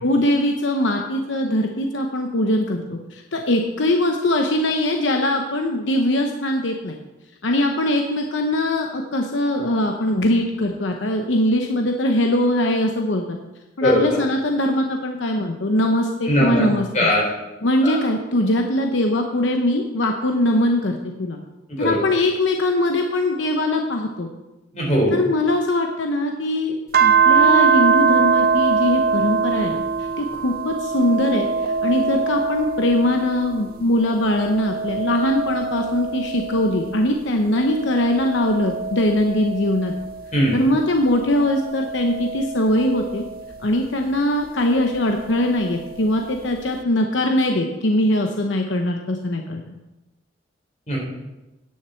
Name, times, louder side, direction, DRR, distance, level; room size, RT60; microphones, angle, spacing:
voice 1, 0.0-7.0 7.4-13.4 13.8-17.1 17.6-21.4 21.8-24.3 25.1-39.9 40.5-43.2 43.6-49.6, left 1 dB, 75° left, 3 dB, 0.9 m, -21 dB
voice 2, 13.8-14.2 16.3-16.6 16.9-17.2 17.8-18.0 21.8-22.0 24.7-25.2 40.3-40.5 50.9-51.0, equal, 40° left, -2 dB, 3.8 m, -19 dB
sound 1, 26.9-33.7 34.1-37.0 37.6-40.4 41.1-43.6 44.9-46.0, right 5 dB, 50° right, 0.5 m, -23 dB
9.8 x 6.6 x 7.0 m, 1.0 s
head